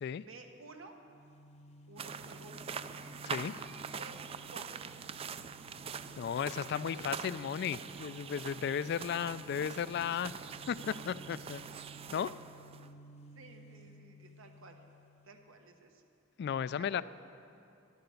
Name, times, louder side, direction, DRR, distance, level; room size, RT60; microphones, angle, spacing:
voice 1, 0.2-0.9 1.9-2.8 3.8-4.2 4.5-4.8 12.9-14.8 15.2-16.0 16.8-17.0, right 3 dB, 85° right, 4 dB, 1.2 m, -53 dB
sound 1, 1.0-15.6, right 2 dB, 35° left, 0.8 m, -55 dB
sound 2, 2.0-12.9, right 6 dB, 30° right, 0.3 m, -44 dB
voice 2, 3.2-3.6 6.2-10.3 10.7-11.6 12.1-12.3 16.4-17.0, left 8 dB, 55° left, 17 dB, 0.3 m, -35 dB
11.5 x 10.0 x 7.0 m, 2.7 s
head